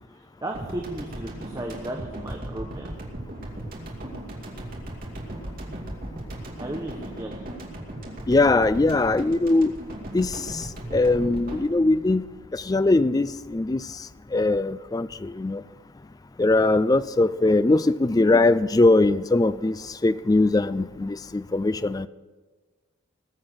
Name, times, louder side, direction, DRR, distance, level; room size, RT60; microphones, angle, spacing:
voice 1, 0.1-2.9 6.6-7.4, right 1 dB, 15° right, 1 dB, 1.0 m, -35 dB
sound 1, 0.5-13.0, right 1 dB, 40° right, 2.5 m, -37 dB
voice 2, 8.3-9.7 10.1-10.3 10.9-12.2 12.5-13.8 14.3-15.6 16.4-19.8 20.0-22.1, left 2 dB, 15° left, 15 dB, 0.3 m, -21 dB
20.0 x 7.6 x 6.4 m, 1.4 s
head